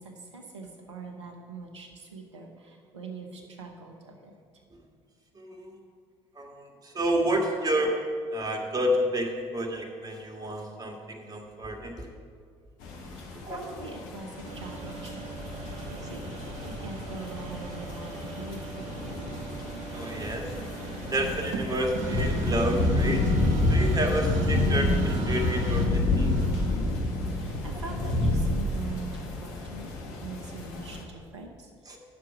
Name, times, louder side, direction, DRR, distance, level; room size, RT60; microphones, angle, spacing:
voice 1, 0.0-4.4 13.2-15.3 15.8-16.2 16.6-19.1 27.3-29.1 29.4-29.9 30.2-32.0, right 3 dB, 85° right, 3 dB, 1.0 m, -43 dB
voice 2, 5.4-5.8 6.4-8.0 8.3-12.1 13.4-13.6 19.9-20.5 21.1-23.3 23.7-26.3 31.9-32.0, right 1 dB, 25° right, 2 dB, 1.8 m, -30 dB
sound 1, 12.8-31.0, left 2 dB, 70° left, 1.4 m, -29 dB
sound 2, 14.4-28.0, right 3 dB, 60° right, 1.2 m, -38 dB
9.7 x 6.1 x 5.9 m, 2.1 s
figure-of-eight pair, 50°, 14 cm